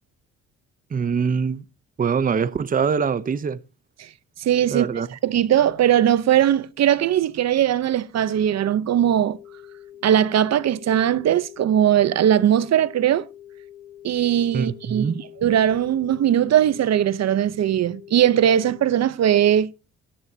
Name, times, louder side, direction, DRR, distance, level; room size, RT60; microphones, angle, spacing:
voice 1, 0.9-1.6 2.0-3.6 4.7-5.1 14.5-15.2, right 6 dB, 30° right, 0.7 m, -23 dB
voice 2, 4.4-9.4 10.0-13.3 14.0-19.7, right 10 dB, 60° right, 0.8 m, -20 dB
sound 1, 8.9-18.9, left 11 dB, 75° left, 2.8 m, -45 dB
16.0 x 10.5 x 2.8 m
cardioid pair, 90°, 30 cm